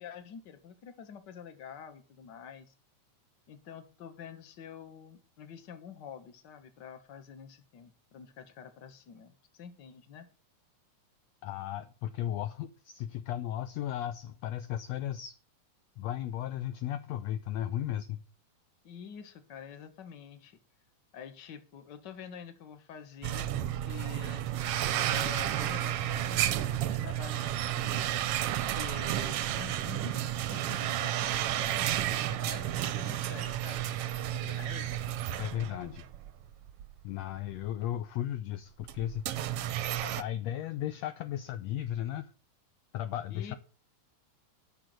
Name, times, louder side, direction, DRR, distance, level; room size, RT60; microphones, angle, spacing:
voice 1, 0.0-2.7 3.5-10.3 18.8-20.6 21.1-24.5 25.1-28.2 28.6-34.9 43.3-43.6, left 7 dB, 45° left, 1.6 m, -47 dB
voice 2, 11.4-15.4 16.0-18.2 35.4-36.0 37.0-39.2 40.0-42.3 42.9-43.6, left 11 dB, 75° left, 1.7 m, -35 dB
sound 1, 23.2-36.3 36.7-36.8 37.6-37.7 38.8-40.2, right 12 dB, 70° right, 1.4 m, -32 dB
10.5 x 6.2 x 7.8 m
omnidirectional pair, 3.4 m